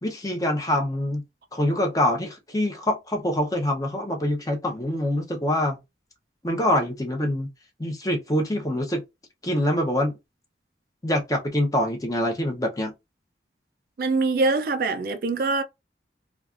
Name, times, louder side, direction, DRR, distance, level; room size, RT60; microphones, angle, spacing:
voice 1, 0.0-1.2 1.5-5.8 6.4-7.5 7.8-9.0 9.4-10.2 11.0-12.9, left 1 dB, 20° left, 0.7 m, -25 dB
voice 2, 14.0-15.6, right 3 dB, 55° right, 0.4 m, -23 dB
3.1 x 2.4 x 2.4 m
head